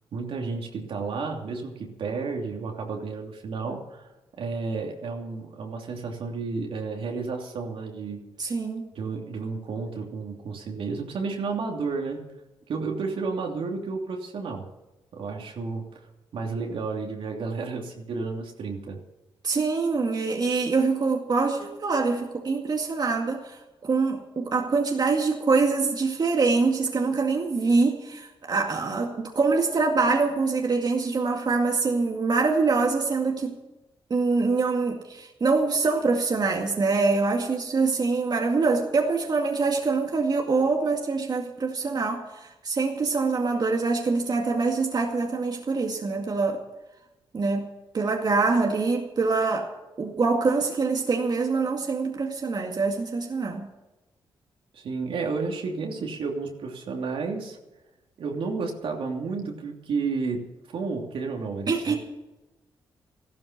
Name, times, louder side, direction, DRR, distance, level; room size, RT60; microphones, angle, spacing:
voice 1, 0.1-4.1 4.4-8.3 8.9-12.2 12.7-14.7 15.1-16.0 16.3-19.0 54.7-57.6 58.2-62.0, right 4 dB, 70° right, 1 dB, 2.9 m, -32 dB
voice 2, 8.4-8.9 19.4-33.6 34.1-46.6 47.3-47.7 47.9-49.7 50.0-53.7 61.7-61.9, right 4 dB, 45° right, 1 dB, 2.1 m, -24 dB
14.5 x 13.0 x 6.1 m, 1.0 s
cardioid pair, 65°, 9 cm